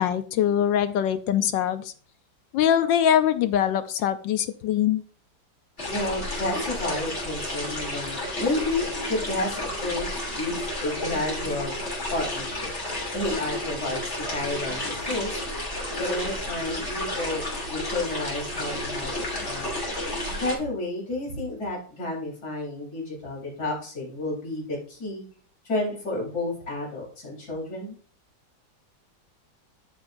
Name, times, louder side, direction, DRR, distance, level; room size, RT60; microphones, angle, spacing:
voice 1, 0.0-1.9 2.5-5.0, left 10 dB, 80° left, 11 dB, 1.3 m, -23 dB
sound 1, 5.8-20.5, left 1 dB, 35° left, 3.3 m, -31 dB
voice 2, 5.9-11.7 12.1-12.7 13.1-14.8 15.1-15.4 16.0-17.4 17.7-19.7 20.4-25.2 25.6-28.0, left 2 dB, 55° left, -3 dB, 4.5 m, -31 dB
13.5 x 5.5 x 2.6 m, 0.42 s
omnidirectional pair, 2.1 m